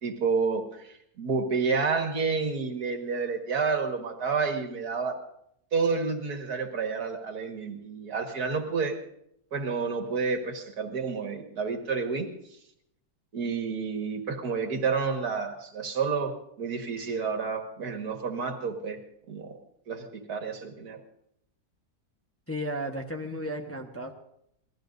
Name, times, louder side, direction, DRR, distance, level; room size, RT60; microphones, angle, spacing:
voice 1, 0.0-5.2 5.7-9.0 9.5-12.3 13.3-19.0 19.3-19.6 19.9-21.0, right 5 dB, 80° right, 4 dB, 2.2 m, -30 dB
voice 2, 22.5-24.1, equal, 10° left, 3 dB, 1.0 m, -34 dB
27.0 x 17.5 x 2.6 m, 0.75 s
omnidirectional pair, 1.6 m